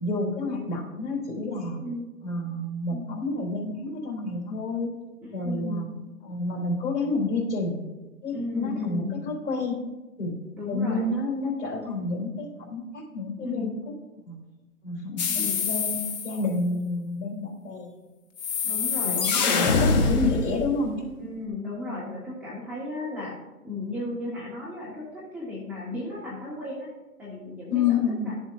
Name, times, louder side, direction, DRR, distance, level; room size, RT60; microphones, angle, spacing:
voice 1, 0.0-1.8 2.2-4.9 5.3-5.9 6.2-7.8 8.2-9.8 10.2-10.3 10.7-13.7 14.3-14.4 14.8-17.9 19.0-21.1 27.7-28.3, left 3 dB, 45° left, -3 dB, 3.3 m, -29 dB
voice 2, 1.8-2.1 2.9-3.3 5.4-5.9 8.3-9.1 10.6-11.0 13.4-13.7 15.3-15.7 18.6-20.3 21.2-23.3 23.6-26.9 27.2-28.0 28.2-28.3, left 2 dB, 5° right, -9 dB, 1.4 m, -35 dB
sound 1, 15.2-16.4 18.4-20.8, left 4 dB, 30° left, 0.8 m, -25 dB
13.5 x 7.3 x 2.6 m, 1.2 s
figure-of-eight pair, 135°, 46 cm